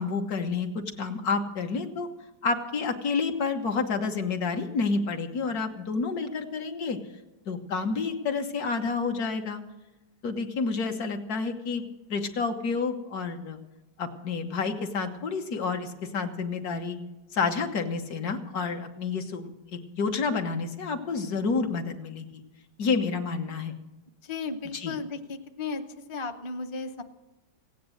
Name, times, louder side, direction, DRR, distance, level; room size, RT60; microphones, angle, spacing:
voice 1, 0.0-2.1 2.4-7.0 7.5-9.6 10.2-13.6 14.0-17.0 17.3-22.4 22.8-23.7 24.7-25.0, left 4 dB, 65° left, 5 dB, 1.6 m, -29 dB
voice 2, 24.2-25.8 26.1-27.0, left 4 dB, 30° left, 5 dB, 0.5 m, -35 dB
16.5 x 9.4 x 7.6 m, 1.0 s
omnidirectional pair, 1.9 m